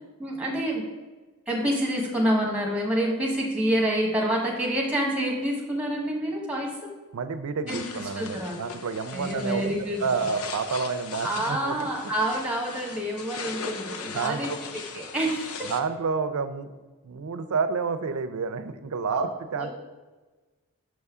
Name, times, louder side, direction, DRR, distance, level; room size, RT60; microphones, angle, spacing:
voice 1, 0.2-0.8 1.5-6.9 7.7-7.8 8.2-8.6 9.1-10.0 11.2-15.7 19.2-19.3 19.6-19.7, right 1 dB, 5° right, -1 dB, 1.1 m, -27 dB
voice 2, 7.1-12.1 14.1-14.6 15.6-16.7 17.0-19.7, right 5 dB, 85° right, 10 dB, 0.5 m, -29 dB
sound 1, 7.7-15.8, left 5 dB, 85° left, 0.6 m, -39 dB
6.2 x 5.5 x 3.6 m, 1.3 s
head